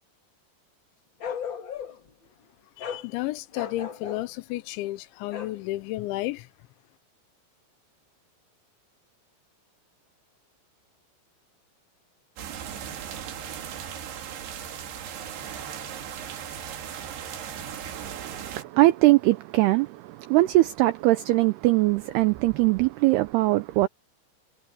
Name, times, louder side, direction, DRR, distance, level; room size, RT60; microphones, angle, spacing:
Bark, 1.2-2.1 2.8-3.1 3.5-4.3 5.3-5.6, left 7 dB, 65° left, 1.2 m, -35 dB
voice 1, 2.8-6.5, left 17 dB, 80° left, 3.1 m, -32 dB
sound 1, 12.4-18.6, right 8 dB, 65° right, 4.0 m, -37 dB
voice 2, 17.9-23.9, right 18 dB, 85° right, 2.3 m, -22 dB
omnidirectional pair, 5.4 m